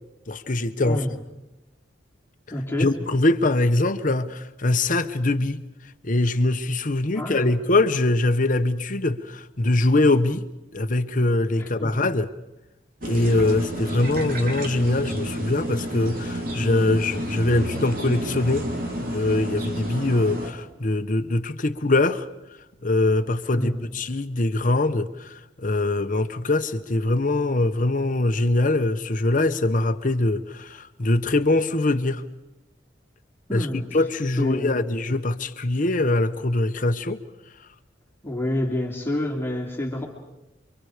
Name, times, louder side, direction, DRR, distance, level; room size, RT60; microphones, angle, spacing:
voice 1, 0.3-1.0 2.8-5.7 6.0-10.4 10.7-12.3 13.0-18.7 19.0-22.3 22.8-32.2 33.5-37.2, left 2 dB, 45° left, 1.1 m, -23 dB
voice 2, 2.5-2.9 7.1-7.5 11.6-12.1 23.5-23.9 33.5-33.9 34.4-34.9 38.2-40.0, left 1 dB, 15° left, 2.9 m, -28 dB
sound 1, 13.0-20.5, right 1 dB, 50° right, 3.1 m, -30 dB
28.0 x 24.5 x 5.1 m
head